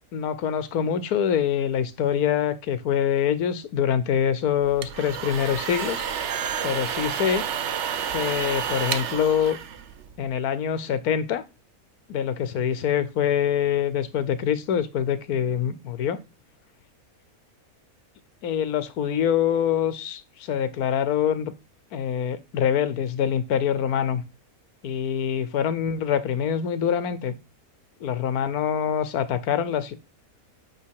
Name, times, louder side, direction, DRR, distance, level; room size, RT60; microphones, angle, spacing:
voice 1, 0.1-6.1 6.6-7.5 8.1-9.6 10.2-11.4 12.1-16.2 18.4-21.5 21.9-24.2 24.8-27.3 28.0-29.9, left 8 dB, 85° left, 14 dB, 1.3 m, -25 dB
sound 1, 4.6-10.3, right 8 dB, 60° right, 0.9 m, -30 dB
8.8 x 3.7 x 4.7 m, 0.27 s
omnidirectional pair, 1.5 m